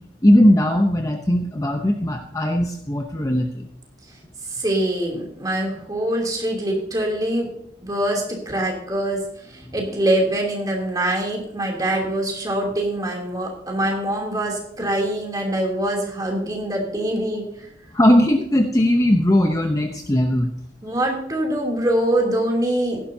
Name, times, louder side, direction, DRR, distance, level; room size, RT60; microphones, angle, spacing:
voice 1, 0.2-3.7 9.7-9.8 17.9-20.5, left 1 dB, 20° left, 4 dB, 0.7 m, -18 dB
voice 2, 4.5-7.5 7.8-17.7 20.8-23.0, right 1 dB, 20° right, 0 dB, 3.0 m, -24 dB
16.0 x 11.5 x 2.8 m, 0.72 s
head